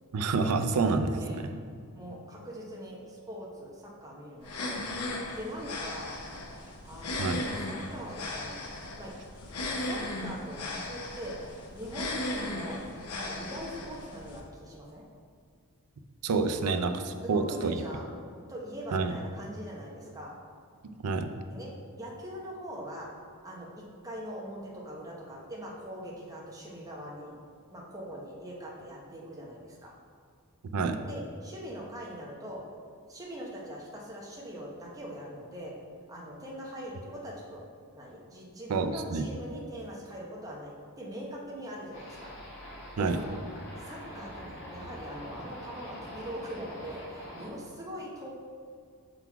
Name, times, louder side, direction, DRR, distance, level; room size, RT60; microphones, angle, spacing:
voice 1, 0.1-1.5 7.2-7.4 16.2-17.8 18.9-19.2 21.0-21.3 30.7-31.0 38.7-39.2 43.0-43.2, right 4 dB, 80° right, 8 dB, 0.5 m, -28 dB
voice 2, 1.9-4.8 5.3-6.1 6.8-8.6 9.0-9.1 9.9-11.4 11.7-12.8 13.1-15.0 17.2-18.0 18.5-20.3 21.5-23.1 23.4-27.3 27.7-29.9 31.1-32.6 33.1-35.7 36.1-37.7 37.9-42.3 43.0-43.3 43.8-48.3, equal, 15° right, -3 dB, 0.9 m, -42 dB
sound 1, 4.4-14.4, left 2 dB, 90° left, 0.8 m, -37 dB
sound 2, 41.9-47.5, equal, 55° left, 1.4 m, -44 dB
5.8 x 4.0 x 4.6 m, 2.2 s
head